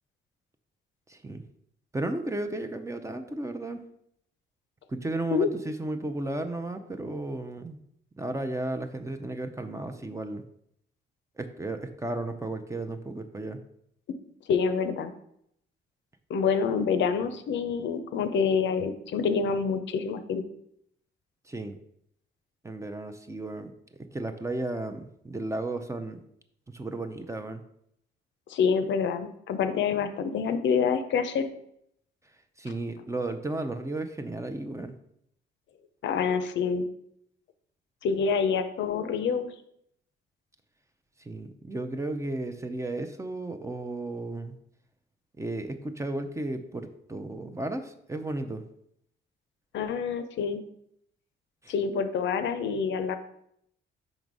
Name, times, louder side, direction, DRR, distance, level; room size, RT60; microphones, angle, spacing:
voice 1, 1.1-1.4 1.9-3.8 4.9-7.8 8.2-10.4 11.4-13.6 21.4-21.8 22.6-26.2 26.7-27.6 32.6-34.9 41.2-44.5 45.4-48.6 51.6-51.7, right 2 dB, 15° right, 7 dB, 0.5 m, -34 dB
voice 2, 14.5-15.1 16.3-20.4 28.5-31.5 36.0-36.9 38.0-39.5 49.7-50.6 51.7-53.2, left 6 dB, 65° left, 9 dB, 0.6 m, -27 dB
5.2 x 3.9 x 4.7 m, 0.73 s
cardioid pair, 90°, 20 cm